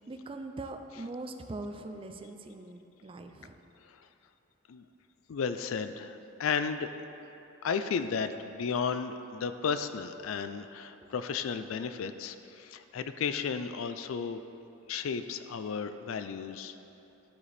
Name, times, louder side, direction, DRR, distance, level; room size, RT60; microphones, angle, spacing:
voice 1, 0.0-3.6, right 2 dB, 25° right, 6 dB, 0.4 m, -41 dB
voice 2, 5.3-6.9 7.6-14.4 14.9-16.8, left 6 dB, 70° left, 10 dB, 0.4 m, -33 dB
12.0 x 5.0 x 4.2 m, 2.9 s
head